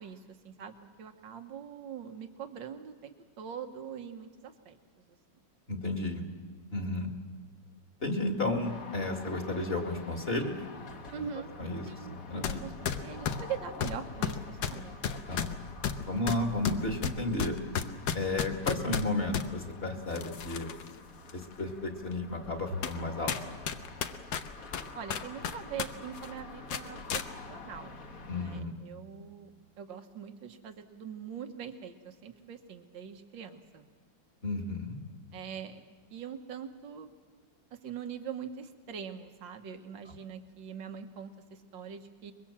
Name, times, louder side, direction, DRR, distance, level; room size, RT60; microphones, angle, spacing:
voice 1, 0.0-5.2 11.1-11.5 11.9-15.0 22.7-22.8 24.9-27.2 27.5-28.0 28.3-29.5 29.8-33.9 35.3-35.8 36.1-37.1 37.7-42.3, right 7 dB, 85° right, 6 dB, 2.0 m, -43 dB
voice 2, 5.7-6.2 6.7-7.1 8.0-10.6 11.6-11.8 12.3-12.6 15.3-15.5 16.0-17.6 18.1-20.7 21.3-23.3 28.3-28.7 34.4-35.0, left 2 dB, 35° left, 3 dB, 2.4 m, -32 dB
sound 1, 8.6-28.6, left 4 dB, 50° left, 1.7 m, -48 dB
sound 2, 12.4-12.6 12.9-19.5 20.1-20.9 21.3-21.4 22.1-22.2 22.8-23.0 23.3-25.9 26.2-26.3 26.7-27.3, left 7 dB, 85° left, 1.7 m, -33 dB
24.0 x 22.0 x 7.4 m, 1.4 s
omnidirectional pair, 2.0 m